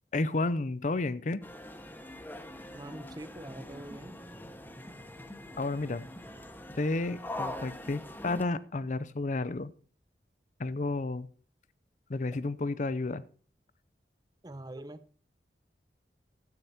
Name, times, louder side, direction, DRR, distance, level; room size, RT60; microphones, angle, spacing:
voice 1, 0.1-1.4 5.6-6.1 6.8-9.7 10.6-11.3 12.1-13.2, left 2 dB, 45° left, 0.6 m, -31 dB
sound 1, 1.4-8.5, left 1 dB, 10° left, 0.9 m, -43 dB
voice 2, 2.7-4.2 14.4-15.0, right 1 dB, 20° right, 0.7 m, -44 dB
13.5 x 8.5 x 4.3 m
head